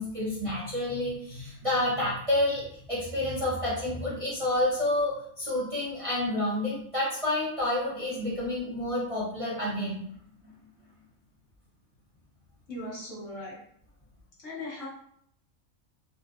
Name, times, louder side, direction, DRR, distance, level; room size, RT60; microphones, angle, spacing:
voice 1, 0.0-10.1, left 1 dB, 30° right, -8 dB, 0.7 m, -29 dB
voice 2, 12.7-13.6 14.4-14.9, left 1 dB, 70° left, -6 dB, 1.6 m, -38 dB
4.0 x 2.2 x 2.4 m, 0.66 s
omnidirectional pair, 1.4 m